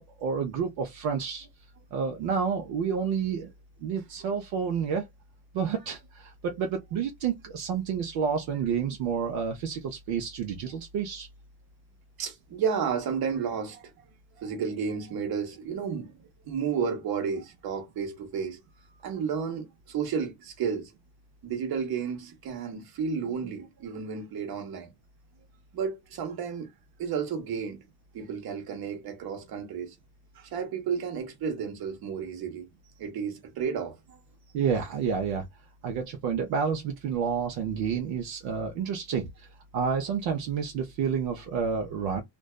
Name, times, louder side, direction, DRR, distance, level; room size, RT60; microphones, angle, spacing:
voice 1, 0.0-1.5 1.9-3.5 3.8-5.1 5.5-11.3 34.5-35.5 35.8-39.5 39.7-42.2, right 6 dB, 70° right, 0.7 m, -29 dB
voice 2, 12.2-13.9 14.4-18.6 19.0-20.9 21.4-24.9 25.7-26.7 27.0-27.8 28.1-30.0 30.3-32.7 33.0-34.2, right 6 dB, 50° right, 1.0 m, -32 dB
2.5 x 2.2 x 2.2 m
cardioid pair, 110°, 47 cm